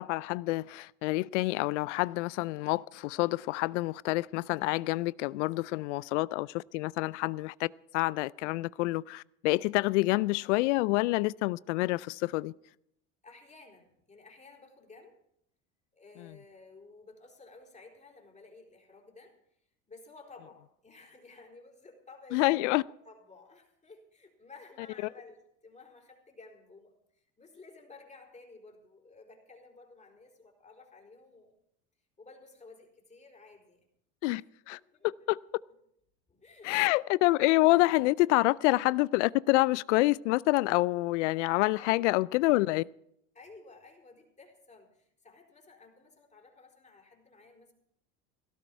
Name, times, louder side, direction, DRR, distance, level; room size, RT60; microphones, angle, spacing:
voice 1, 0.0-7.7 7.9-12.5 22.3-22.8 34.2-34.4 34.7-34.8 35.0-35.4 36.6-42.9, left 20 dB, 80° left, 0.5 m, -27 dB
voice 2, 13.2-15.2 15.9-19.4 19.9-31.5 32.2-33.8 34.4-35.3 36.3-36.9 38.5-38.7 41.7-42.3 43.3-47.7, left 3 dB, 20° left, 4.3 m, -54 dB
17.0 x 13.0 x 4.6 m
supercardioid pair, 90°, 36 cm